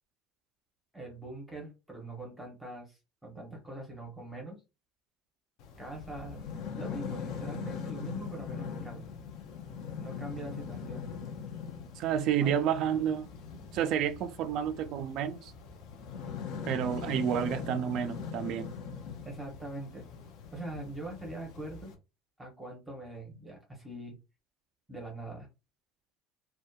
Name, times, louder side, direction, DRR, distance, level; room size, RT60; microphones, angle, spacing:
voice 1, 0.9-4.6 5.8-6.5 6.7-9.1 10.0-11.1 12.4-12.6 17.3-17.5 19.2-20.1 20.5-21.9 22.4-24.2 24.9-25.5, right 1 dB, 5° right, 0.8 m, -42 dB
sound 1, 5.6-21.9, left 6 dB, 60° left, 0.5 m, -41 dB
voice 2, 12.0-13.3 13.7-15.5 16.7-18.7, right 9 dB, 50° right, 0.3 m, -30 dB
2.7 x 2.1 x 2.2 m
cardioid pair, 160°, 0 cm